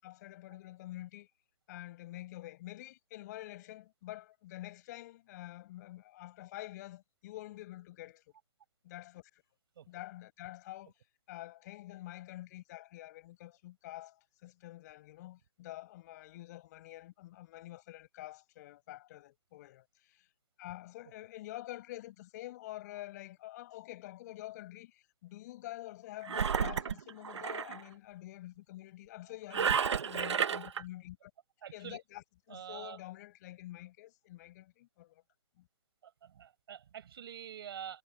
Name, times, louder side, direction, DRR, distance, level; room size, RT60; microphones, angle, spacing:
voice 1, 0.0-1.3 1.7-8.2 8.8-9.2 9.9-10.9 11.3-14.2 14.4-20.3 20.6-31.3 31.7-35.2 35.6-35.7, left 16 dB, 35° left, 6.6 m, -47 dB
Engine, 26.3-27.8 29.5-30.8, right 7 dB, 70° right, 1.9 m, -31 dB
voice 2, 31.6-32.0 32.5-33.0 36.0-38.0, right 9 dB, 55° right, 5.7 m, -46 dB
hypercardioid pair, 155°, 15 cm